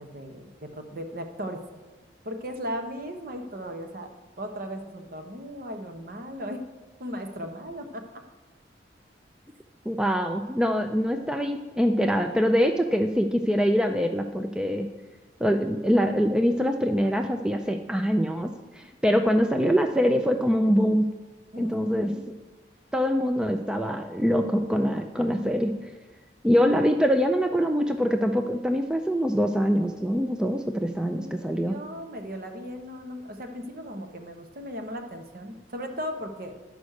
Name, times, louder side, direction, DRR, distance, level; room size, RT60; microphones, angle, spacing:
voice 1, 0.0-1.6 2.2-4.1 4.4-6.7 7.0-8.1 21.5-22.3 31.2-36.5, equal, 55° right, 5 dB, 1.1 m, -37 dB
voice 2, 9.9-14.9 15.4-21.2 21.6-22.2 22.9-25.9 26.4-31.8, equal, 5° right, 5 dB, 0.4 m, -24 dB
11.5 x 5.2 x 6.4 m, 1.3 s
head